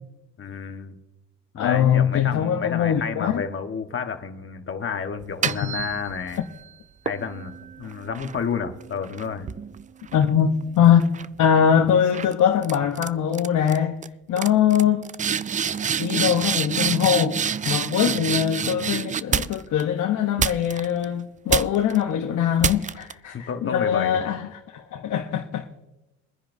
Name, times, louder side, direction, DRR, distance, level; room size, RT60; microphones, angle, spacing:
voice 1, 0.4-1.0 1.5-6.5 7.0-9.5 23.2-24.2, left 6 dB, 45° left, 1.4 m, -30 dB
voice 2, 1.6-3.4 5.4-5.7 10.1-11.0 11.4-14.0 14.3-15.0 16.0-25.7, left 9 dB, 75° left, 1.1 m, -22 dB
sound 1, 5.2-6.4 7.1-10.6 11.0-11.4 12.1-12.3 12.6-13.1 13.3-13.8 14.0-14.1 14.4-19.8 20.4-21.0 21.5-22.0 22.6-23.1, right 7 dB, 25° right, 0.3 m, -28 dB
23.5 x 10.0 x 2.7 m
cardioid pair, 90°, 30 cm